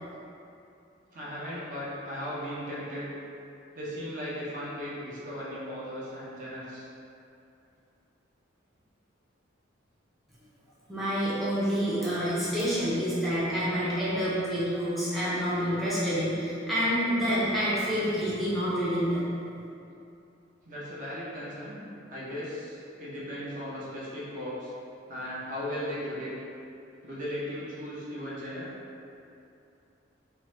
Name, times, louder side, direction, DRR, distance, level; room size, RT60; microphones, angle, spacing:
voice 1, 1.1-3.1 3.7-6.9 20.6-21.8 22.1-24.7 25.1-26.3 27.0-28.7, equal, 45° right, -7 dB, 0.6 m, -37 dB
voice 2, 10.9-19.3, equal, ahead, -11 dB, 0.5 m, -28 dB
2.7 x 2.1 x 3.0 m, 2.7 s
head